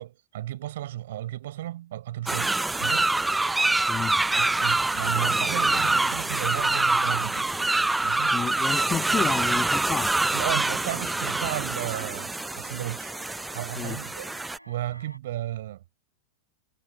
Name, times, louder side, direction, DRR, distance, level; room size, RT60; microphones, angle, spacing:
voice 1, 0.0-3.1 3.8-3.9 4.3-7.5 8.0-8.4 10.3-13.1 13.5-14.3 14.7-15.8, right 14 dB, 55° right, 4.2 m, -34 dB
sound 1, 2.3-14.6, right 2 dB, 5° right, 0.4 m, -25 dB
voice 2, 8.3-10.1 13.8-14.0, left 7 dB, 20° left, 1.8 m, -30 dB
sound 2, 9.5-15.2, equal, 90° right, 7.3 m, -52 dB
figure-of-eight pair, 90°, 0 cm